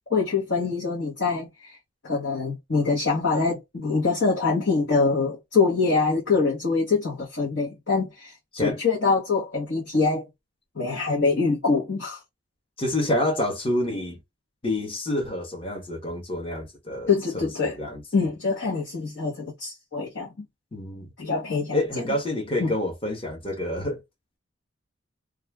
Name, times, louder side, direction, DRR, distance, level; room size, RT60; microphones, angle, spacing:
voice 1, 0.1-1.8 2.0-10.3 10.7-12.2 17.1-17.8 18.1-20.3 21.2-21.8 22.6-22.7, left 4 dB, 65° left, 1.0 m, -24 dB
voice 2, 12.8-14.2 14.6-18.0 20.7-21.1 21.7-24.0, left 1 dB, 30° left, 0.9 m, -28 dB
2.4 x 2.3 x 3.2 m
head